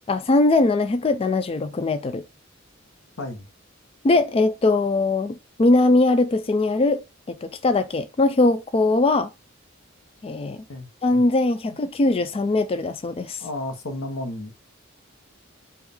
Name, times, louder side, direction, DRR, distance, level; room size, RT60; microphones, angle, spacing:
voice 1, 0.1-2.2 4.0-7.0 7.3-9.3 10.2-10.7 11.0-13.4, left 2 dB, 30° left, 0.3 m, -21 dB
voice 2, 3.2-3.5 10.7-10.9 11.6-11.8 13.4-14.5, left 1 dB, 90° left, 1.0 m, -32 dB
4.4 x 2.4 x 3.4 m
head